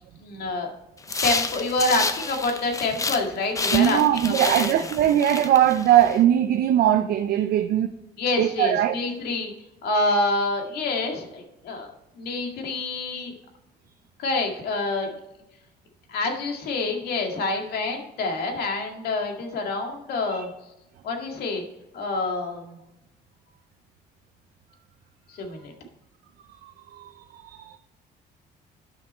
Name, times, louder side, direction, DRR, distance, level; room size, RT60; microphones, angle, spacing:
voice 1, 0.2-0.7 1.2-4.7 8.2-9.5 9.8-11.9 12.2-13.3 14.2-15.1 16.1-20.5 21.0-21.6 21.9-22.8 25.3-25.7, left 2 dB, 70° left, 2.0 m, -27 dB
sound 1, 1.0-3.3 3.5-6.1, left 3 dB, 20° left, 0.7 m, -29 dB
voice 2, 3.7-7.9 8.4-8.9 20.3-20.4 26.9-27.8, right 11 dB, 65° right, 0.5 m, -21 dB
9.8 x 6.0 x 4.3 m
cardioid pair, 110°, 17 cm